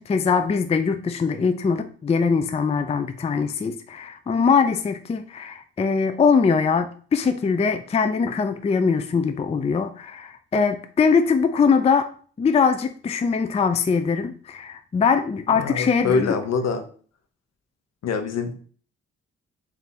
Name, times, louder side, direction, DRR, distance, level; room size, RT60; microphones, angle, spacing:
voice 1, 0.0-12.1 12.4-16.4, left 5 dB, 20° left, 9 dB, 0.4 m, -22 dB
voice 2, 15.6-16.8 18.0-18.5, left 5 dB, 60° left, 7 dB, 0.8 m, -24 dB
3.5 x 2.6 x 4.1 m, 0.44 s
supercardioid pair, 55°, 30 cm